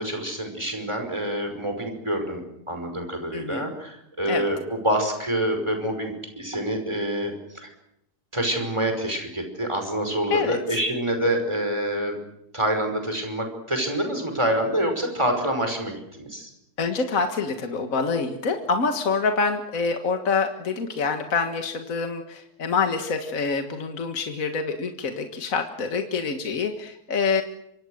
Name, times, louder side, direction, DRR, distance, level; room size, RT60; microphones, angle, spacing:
voice 1, 0.0-7.7 8.3-12.2 12.5-16.5, right 1 dB, 15° right, 5 dB, 5.5 m, -27 dB
voice 2, 3.3-3.7 4.3-4.5 10.3-10.8 16.8-27.4, left 4 dB, 60° left, 5 dB, 2.0 m, -26 dB
27.0 x 25.0 x 6.5 m, 0.82 s
omnidirectional pair, 1.7 m